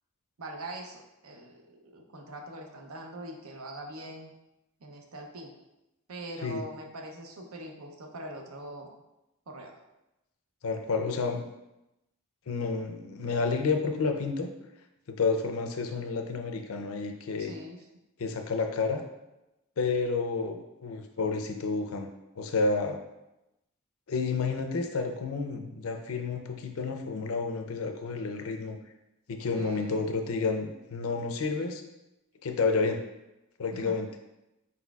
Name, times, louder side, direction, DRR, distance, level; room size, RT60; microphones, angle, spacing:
voice 1, 0.4-4.3 4.8-5.5 6.1-8.9 9.5-9.8 17.4-17.8 29.5-30.1 33.7-34.0, right 1 dB, 80° right, 2 dB, 0.7 m, -42 dB
voice 2, 10.6-11.5 12.5-14.5 15.1-17.5 18.2-19.0 19.8-22.1 22.4-23.0 24.1-28.8 29.3-31.8 32.4-33.0 33.6-34.1, left 4 dB, 80° left, 5 dB, 0.5 m, -30 dB
4.5 x 4.1 x 2.3 m, 0.93 s
head